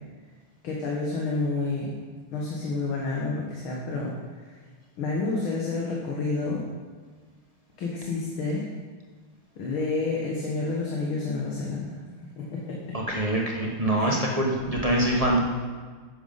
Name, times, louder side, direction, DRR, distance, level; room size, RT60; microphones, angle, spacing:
voice 1, 0.6-2.0 2.3-4.6 5.0-6.7 7.8-8.7 9.6-12.0 12.4-13.0 14.0-14.2, left 3 dB, 70° left, -3 dB, 2.3 m, -29 dB
voice 2, 12.9-15.4, right 1 dB, 25° right, -2 dB, 0.9 m, -24 dB
10.5 x 8.1 x 5.5 m, 1.5 s
omnidirectional pair, 2.4 m